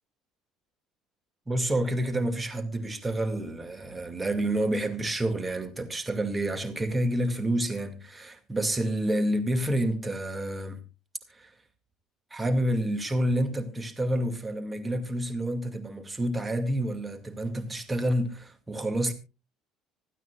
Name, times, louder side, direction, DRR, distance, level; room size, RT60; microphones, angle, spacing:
voice 1, 1.5-10.8 11.3-11.5 12.3-19.1, right 1 dB, 15° right, 2.2 m, -29 dB
26.0 x 9.2 x 2.4 m
supercardioid pair, 105°, 0 cm